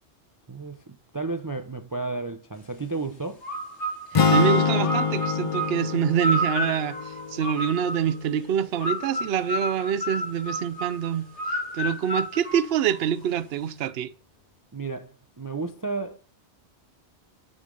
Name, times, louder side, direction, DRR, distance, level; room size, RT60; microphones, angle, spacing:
voice 1, 0.5-3.5 14.7-16.2, right 3 dB, 25° right, 0.4 m, -32 dB
sound 1, 3.4-8.1 8.8-13.3, right 1 dB, 90° left, 2.8 m, -30 dB
sound 2, 4.1-8.3, left 6 dB, 55° left, 0.4 m, -26 dB
voice 2, 4.1-11.3 11.7-14.1, right 9 dB, 65° right, 0.8 m, -26 dB
11.0 x 5.1 x 3.8 m
omnidirectional pair, 1.1 m